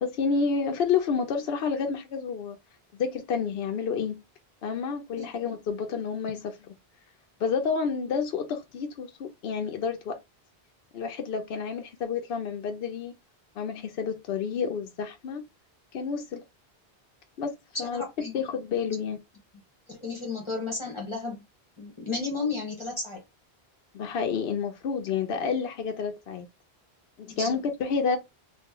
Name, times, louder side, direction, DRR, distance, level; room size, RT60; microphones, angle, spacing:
voice 1, 0.0-2.6 3.0-4.2 4.6-6.6 7.4-10.2 10.9-13.1 13.6-15.5 15.9-16.4 17.4-18.0 18.3-19.2 23.9-26.5 27.2-28.2, left 5 dB, 70° left, 0.8 m, -29 dB
voice 2, 17.8-18.4 18.9-19.0 19.9-21.4 21.8-23.2 27.2-27.6, left 4 dB, 30° left, 1.2 m, -33 dB
2.9 x 2.5 x 3.6 m
omnidirectional pair, 1.0 m